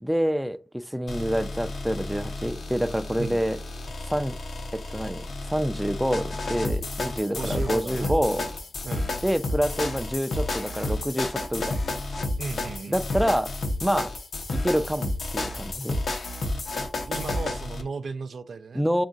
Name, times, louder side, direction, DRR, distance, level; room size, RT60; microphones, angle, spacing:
voice 1, 0.0-3.6 4.1-4.4 4.7-8.5 9.2-11.8 12.9-13.5 13.8-14.1 14.5-16.0 18.7-19.1, equal, 5° right, 0.3 m, -27 dB
sound 1, 1.1-17.8, left 2 dB, 80° left, 0.6 m, -31 dB
voice 2, 7.3-8.1 8.8-9.1 12.4-13.0 17.0-18.8, right 4 dB, 90° right, 0.3 m, -35 dB
3.6 x 2.4 x 3.8 m
cardioid pair, 55°, 0 cm